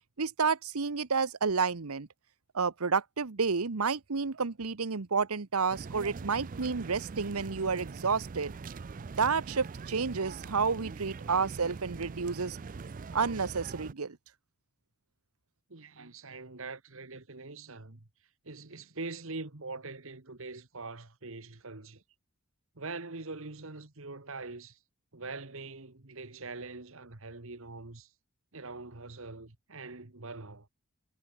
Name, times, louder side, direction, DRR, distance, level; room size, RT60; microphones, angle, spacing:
voice 1, 0.2-2.1 2.5-8.5 9.2-12.6 13.1-14.2, right 5 dB, 85° right, 1.0 m, -30 dB
sound 1, 5.7-13.9, right 4 dB, 40° right, 0.4 m, -42 dB
voice 2, 15.7-18.1 18.4-22.0 22.8-24.8 25.1-28.1 28.5-30.7, right 3 dB, 65° right, 1.7 m, -43 dB
head